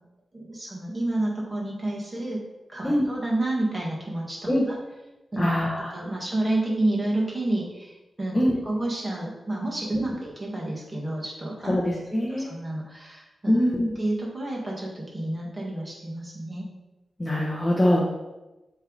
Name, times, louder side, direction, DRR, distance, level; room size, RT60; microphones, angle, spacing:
voice 1, 0.3-2.4 2.7-4.8 5.3-5.5 5.9-8.4 8.6-11.8 12.3-13.6 14.0-16.7, right 1 dB, 20° right, -4 dB, 1.8 m, -29 dB
voice 2, 5.4-5.9 8.3-8.6 11.7-12.5 13.5-13.9 17.2-18.1, equal, 15° left, -4 dB, 1.0 m, -23 dB
7.9 x 3.4 x 4.0 m, 1.0 s
wide cardioid pair, 110°, 0 cm